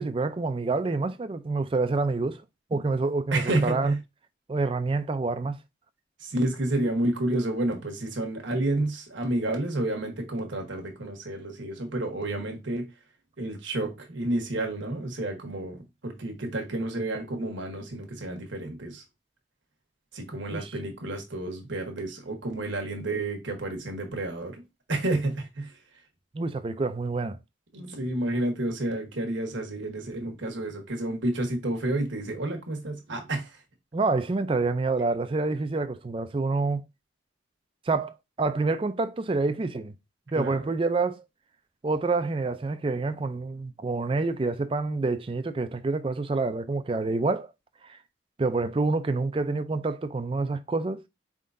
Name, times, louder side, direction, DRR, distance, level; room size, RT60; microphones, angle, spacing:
voice 1, 0.0-2.4 2.7-3.9 4.5-5.6 20.5-20.7 26.3-27.4 33.9-36.8 37.9-38.1 38.4-39.9 40.3-41.2 41.8-47.5 47.8-48.0 48.4-51.0, right 3 dB, 30° right, 0.4 m, -27 dB
voice 2, 3.3-4.0 6.2-12.9 13.4-19.0 20.1-24.6 24.9-25.8 27.7-33.6 40.3-40.6, right 1 dB, 75° right, 1.2 m, -30 dB
4.5 x 3.7 x 2.5 m
head